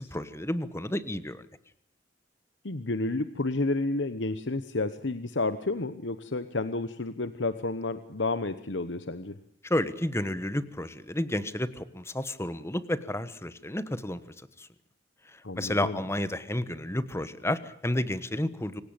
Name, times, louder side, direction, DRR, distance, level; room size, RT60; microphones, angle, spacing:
voice 1, 0.0-1.5 9.6-14.2 14.6-14.7 15.3-18.8, left 1 dB, 15° left, 14 dB, 1.2 m, -31 dB
voice 2, 2.6-9.4 15.4-16.0, left 2 dB, 70° left, 11 dB, 1.1 m, -31 dB
26.0 x 17.5 x 8.9 m, 0.65 s
head